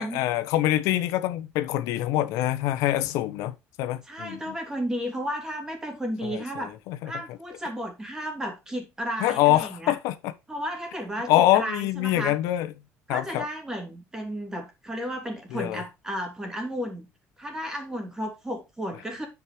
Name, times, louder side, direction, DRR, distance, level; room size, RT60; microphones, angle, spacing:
voice 1, 0.0-4.5 6.2-7.1 9.2-10.3 11.3-12.7 13.1-13.5 15.5-15.8, left 14 dB, 90° left, 1.2 m, -25 dB
voice 2, 4.1-6.7 7.0-9.9 10.5-12.4 13.1-17.1 17.4-19.3, equal, 10° right, 2.9 m, -33 dB
9.9 x 5.3 x 4.9 m
cardioid pair, 155°, 5 cm